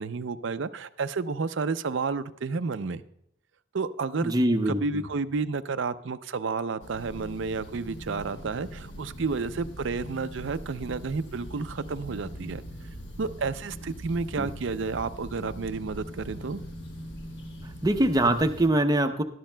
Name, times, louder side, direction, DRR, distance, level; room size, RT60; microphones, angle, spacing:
voice 1, 0.0-3.0 3.7-4.3 4.7-12.6 13.2-16.6, right 4 dB, 60° right, 13 dB, 0.5 m, -31 dB
voice 2, 4.2-5.1 14.4-14.5 17.6-19.2, right 1 dB, 20° right, 7 dB, 0.6 m, -24 dB
sound 1, 6.8-18.7, equal, 55° left, 1.3 m, -41 dB
19.0 x 12.5 x 2.2 m, 0.75 s
head